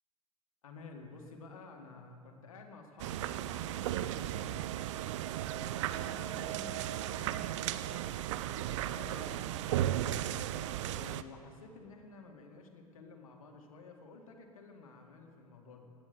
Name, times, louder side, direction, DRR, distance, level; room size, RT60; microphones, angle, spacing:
voice 1, 0.6-4.6 5.5-9.9 10.9-15.8, left 3 dB, 70° left, 3 dB, 2.2 m, -52 dB
sound 1, 3.0-11.2, right 12 dB, 55° right, 0.6 m, -35 dB
18.0 x 9.8 x 8.1 m, 2.6 s
figure-of-eight pair, 85°, 18 cm